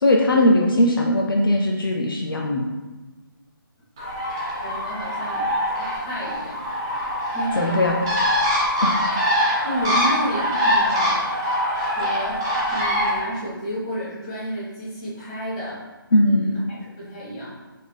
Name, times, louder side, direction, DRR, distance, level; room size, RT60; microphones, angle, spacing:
voice 1, 0.0-2.7 7.6-8.0 8.8-9.0 16.1-16.5, left 1 dB, 70° left, 1 dB, 0.5 m, -19 dB
Bird, 4.0-13.2, equal, 10° right, 0.3 m, -23 dB
voice 2, 4.6-5.5 5.8-6.6 7.3-8.1 9.6-11.3 11.8-12.4 12.7-15.8 16.1-17.6, right 1 dB, 20° left, -8 dB, 1.0 m, -31 dB
3.6 x 3.3 x 2.2 m, 1.2 s
figure-of-eight pair, 160°, 12 cm